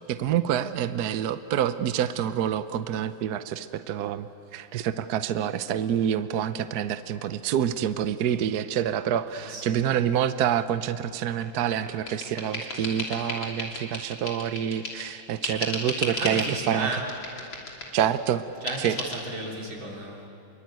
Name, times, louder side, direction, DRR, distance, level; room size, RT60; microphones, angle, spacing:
voice 1, 0.1-4.3 4.5-16.9 17.9-18.4 18.8-19.0, right 9 dB, 65° right, 11 dB, 1.2 m, -27 dB
voice 2, 9.3-9.8 16.2-17.1 18.6-20.3, right 2 dB, 85° right, -1 dB, 4.5 m, -34 dB
sound 1, 11.4-15.1 15.4-16.5 16.9-18.1 18.7-19.2, left 2 dB, 75° left, 4.0 m, -34 dB
27.0 x 23.0 x 9.2 m, 2.9 s
omnidirectional pair, 2.1 m